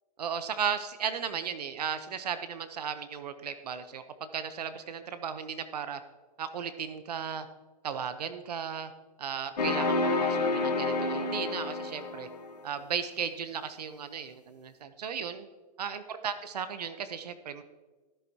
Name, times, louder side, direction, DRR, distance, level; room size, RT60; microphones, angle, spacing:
voice 1, 0.2-6.0 6.4-7.5 7.8-8.9 9.2-12.3 12.6-15.5 15.8-17.6, right 7 dB, 75° right, 11 dB, 0.8 m, -35 dB
sound 1, 9.6-12.6, left 3 dB, 85° left, 1.4 m, -29 dB
13.5 x 8.0 x 2.8 m, 1.3 s
hypercardioid pair, 115°, 21 cm